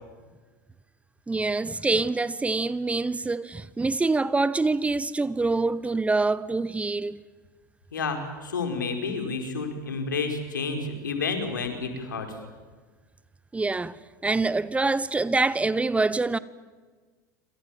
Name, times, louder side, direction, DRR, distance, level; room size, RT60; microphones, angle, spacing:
voice 1, 1.3-7.2 13.5-16.4, right 3 dB, 15° right, 1.0 m, -25 dB
voice 2, 7.9-12.3, left 4 dB, 85° left, 5.3 m, -30 dB
28.0 x 26.5 x 7.6 m
hypercardioid pair, 80°, 10 cm